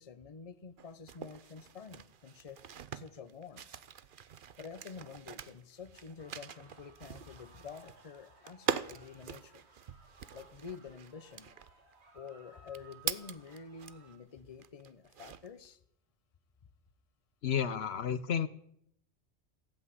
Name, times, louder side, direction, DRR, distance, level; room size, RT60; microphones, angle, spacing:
voice 1, 0.0-2.6 2.9-3.8 4.6-9.6 10.3-11.5 12.1-15.8, left 6 dB, 35° left, 13 dB, 0.9 m, -48 dB
sound 1, 0.8-14.2 14.6-15.7, right 8 dB, 55° right, 0.8 m, -43 dB
sound 2, 6.2-14.2, right 3 dB, 75° right, 2.8 m, -61 dB
voice 2, 17.4-18.5, left 8 dB, 70° left, 14 dB, 1.0 m, -31 dB
16.0 x 8.1 x 9.5 m, 0.71 s
omnidirectional pair, 1.1 m